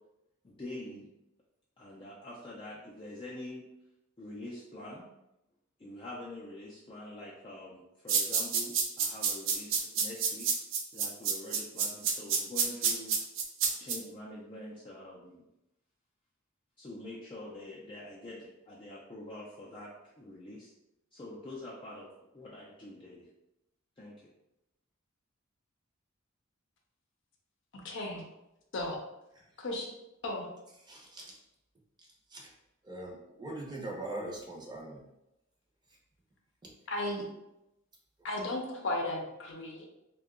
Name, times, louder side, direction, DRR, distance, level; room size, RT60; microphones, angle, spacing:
voice 1, 0.4-1.1 1.8-3.6 4.2-5.1 5.8-10.5 10.9-13.2 13.8-15.4 16.8-19.9 20.2-20.7 21.1-22.1 22.3-23.3 24.0-24.1, left 1 dB, 25° left, -6 dB, 0.4 m, -45 dB
sound 1, 8.1-14.0, right 6 dB, 65° right, 0.4 m, -28 dB
voice 2, 27.8-28.2 28.7-29.0 29.6-29.9 30.2-30.5 36.9-37.3 38.2-39.9, left 1 dB, 65° left, 1 dB, 0.6 m, -35 dB
voice 3, 30.8-31.4 32.3-32.5 32.8-35.0, right 1 dB, 20° right, -2 dB, 0.6 m, -41 dB
2.7 x 2.2 x 3.6 m, 0.91 s
head